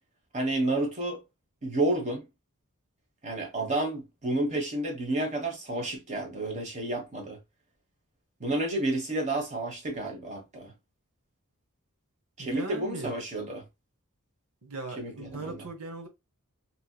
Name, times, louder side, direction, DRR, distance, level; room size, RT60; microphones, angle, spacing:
voice 1, 0.3-1.2 1.6-2.2 3.2-7.4 8.4-10.7 12.4-13.6 15.0-15.6, right 2 dB, 35° right, 1.2 m, -30 dB
voice 2, 12.4-13.1 14.6-16.1, right 3 dB, 80° right, 1.0 m, -38 dB
3.1 x 2.8 x 2.3 m
head